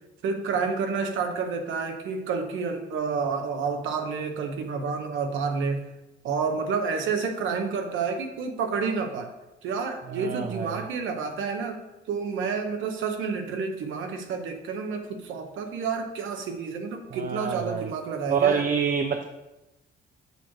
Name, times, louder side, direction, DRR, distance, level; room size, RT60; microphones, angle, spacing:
voice 1, 0.2-5.8 6.2-9.3 9.6-11.8 12.1-18.6, right 5 dB, 80° right, 5 dB, 0.9 m, -29 dB
voice 2, 10.1-10.7 17.1-17.9 18.3-19.2, right 6 dB, 45° right, 5 dB, 0.5 m, -27 dB
6.9 x 3.1 x 5.9 m, 0.98 s
cardioid pair, 90°, 20 cm